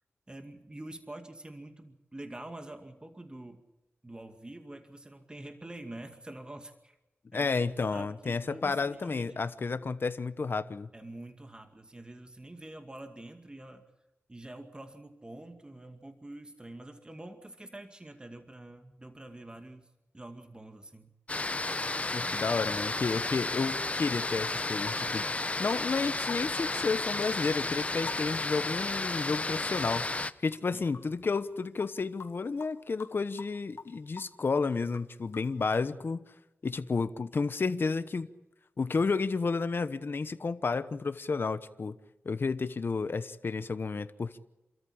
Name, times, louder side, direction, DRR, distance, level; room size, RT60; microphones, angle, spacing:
voice 1, 0.3-3.6 4.0-7.0 7.3-7.6 7.9-9.4 10.9-13.8 14.3-19.9 20.1-21.1 30.7-30.8, right 1 dB, 20° right, 6 dB, 2.2 m, -46 dB
voice 2, 7.3-10.9 22.1-36.2 36.6-38.3 38.8-42.0 42.2-44.4, left 4 dB, 55° left, 11 dB, 1.0 m, -31 dB
sound 1, 21.3-30.3, left 2 dB, 30° left, 0.8 m, -32 dB
sound 2, 24.8-29.6 30.0-35.8, left 5 dB, 70° left, 1.6 m, -48 dB
28.5 x 13.5 x 8.7 m, 0.97 s
wide cardioid pair, 70°, 4 cm